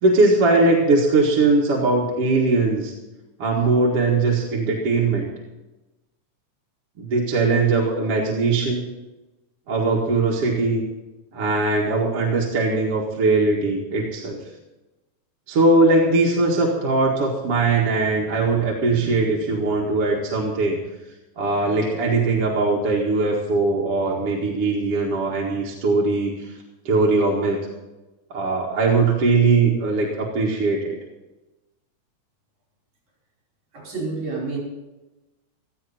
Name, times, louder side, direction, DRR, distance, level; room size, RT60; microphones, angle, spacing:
voice 1, 0.0-2.9 3.4-5.3 7.0-8.8 9.7-10.8 11.3-14.4 15.5-20.8 21.4-26.3 26.9-27.7 28.3-31.0, right 3 dB, 55° right, -3 dB, 2.7 m, -20 dB
voice 2, 33.7-34.6, right 3 dB, 70° right, -3 dB, 6.9 m, -29 dB
16.0 x 14.5 x 4.3 m, 1.1 s
omnidirectional pair, 3.4 m